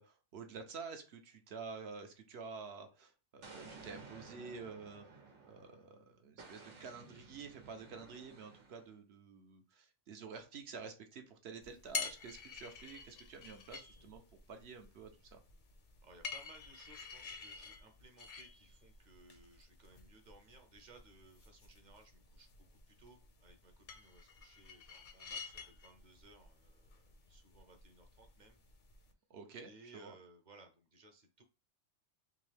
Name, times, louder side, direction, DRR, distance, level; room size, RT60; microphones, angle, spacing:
voice 1, 0.0-5.1 5.5-14.2 14.5-15.4 29.3-30.2, right 5 dB, 65° right, 5 dB, 1.0 m, -49 dB
Explosion, 3.4-5.9 6.4-8.9, right 4 dB, 85° right, 1.4 m, -55 dB
sound 1, 11.6-29.1, left 5 dB, 50° left, 0.7 m, -49 dB
voice 2, 16.0-28.6 29.6-31.4, right 2 dB, 45° right, 5 dB, 0.8 m, -61 dB
3.6 x 3.0 x 3.3 m, 0.32 s
omnidirectional pair, 1.2 m